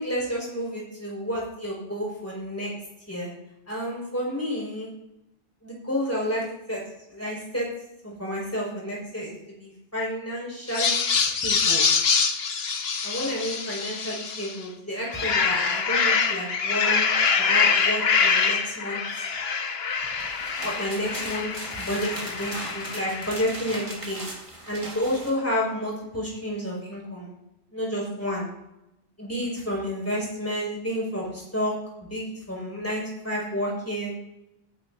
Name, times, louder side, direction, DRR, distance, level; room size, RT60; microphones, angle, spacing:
voice 1, 0.0-2.7 3.1-3.3 3.7-4.9 5.6-6.8 7.1-7.7 8.0-9.3 9.6-11.0 11.4-11.9 13.0-17.1 17.4-19.0 20.6-21.5 21.8-24.2 24.7-27.3 27.7-28.5 29.2-34.1, equal, 15° left, -4 dB, 6.1 m, -30 dB
sound 1, 10.7-14.6 15.0-23.7, left 5 dB, 70° left, 1.3 m, -25 dB
sound 2, 20.0-25.4, right 1 dB, 30° right, 2.1 m, -39 dB
21.5 x 11.5 x 2.8 m, 0.87 s
omnidirectional pair, 1.1 m